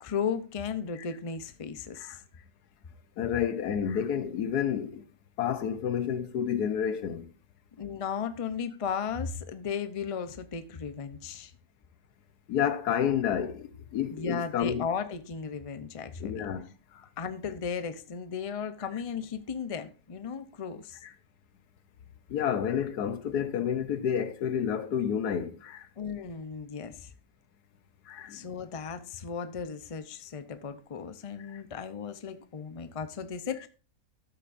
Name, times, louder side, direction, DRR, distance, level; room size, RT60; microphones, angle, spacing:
voice 1, 0.0-2.2 7.8-11.5 14.1-16.5 17.2-21.0 26.0-27.1 28.3-33.7, left 6 dB, 35° left, 0.6 m, -35 dB
voice 2, 3.2-5.1 5.4-7.3 12.5-14.9 16.2-17.0 21.0-21.1 22.3-25.9 28.1-28.5 31.5-31.6, left 8 dB, 90° left, 1.4 m, -30 dB
13.5 x 8.4 x 2.6 m
omnidirectional pair, 1.6 m